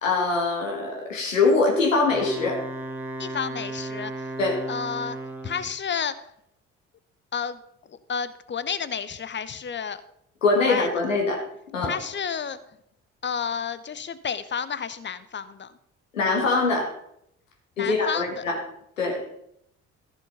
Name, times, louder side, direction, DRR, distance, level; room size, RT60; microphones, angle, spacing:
voice 1, 0.0-2.6 4.4-4.6 10.4-11.4 11.7-12.0 16.1-16.9 17.8-18.6 19.0-19.2, left 3 dB, 85° left, 1 dB, 2.1 m, -23 dB
Wind instrument woodwind instrument, 2.0-5.8, right 2 dB, 5° right, 1.7 m, -35 dB
voice 2, 3.2-4.3 4.7-5.2 5.4-6.1 7.3-7.6 8.1-10.0 10.6-10.9 11.8-12.6 13.2-15.7 17.8-18.4, left 7 dB, 30° left, 14 dB, 1.0 m, -31 dB
14.0 x 6.4 x 5.6 m, 0.75 s
figure-of-eight pair, 45°, 38 cm